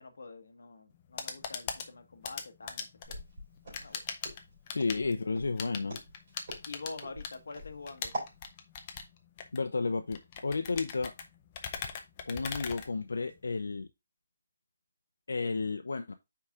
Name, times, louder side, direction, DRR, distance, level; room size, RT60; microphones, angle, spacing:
voice 1, 0.0-3.2 3.7-4.2 4.9-5.0 6.7-8.1, left 3 dB, 60° left, 1.2 m, -46 dB
sound 1, 0.9-13.5, left 7 dB, 20° left, 0.6 m, -42 dB
Walk footsteps, 3.0-8.4, right 1 dB, 30° right, 3.7 m, -43 dB
voice 2, 4.7-6.0 9.5-11.1 12.3-13.9 15.3-16.1, left 4 dB, 85° left, 0.6 m, -32 dB
5.7 x 4.8 x 3.6 m
hypercardioid pair, 180°, 0 cm